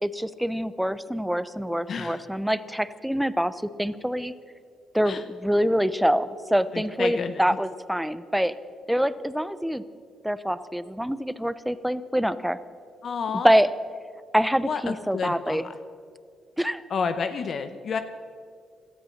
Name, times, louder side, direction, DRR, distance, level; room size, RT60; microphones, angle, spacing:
voice 1, 0.0-4.3 4.9-8.5 8.9-9.8 10.2-12.6 13.4-13.7 14.3-15.6 16.6-16.8, equal, ahead, 15 dB, 0.7 m, -25 dB
voice 2, 1.9-2.2 5.0-5.2 6.7-7.6 13.0-13.5 14.6-15.8 16.9-18.0, left 5 dB, 55° left, 9 dB, 0.8 m, -30 dB
17.0 x 13.0 x 6.5 m, 2.3 s
cardioid pair, 90°, 0 cm